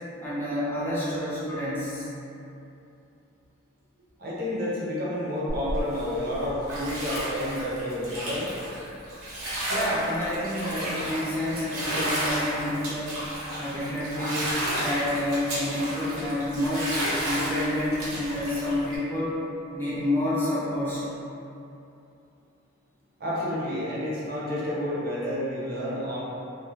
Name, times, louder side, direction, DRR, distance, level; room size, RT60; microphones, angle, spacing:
voice 1, 0.2-2.1 9.7-13.2 13.6-16.9 17.2-19.3 19.7-21.1, left 1 dB, 10° left, -10 dB, 0.3 m, -29 dB
voice 2, 4.2-8.5 23.2-26.2, left 1 dB, 45° right, -7 dB, 0.5 m, -30 dB
Bathtub (filling or washing), 5.5-19.0, equal, 85° right, 0.7 m, -32 dB
2.3 x 2.1 x 2.7 m, 2.8 s
head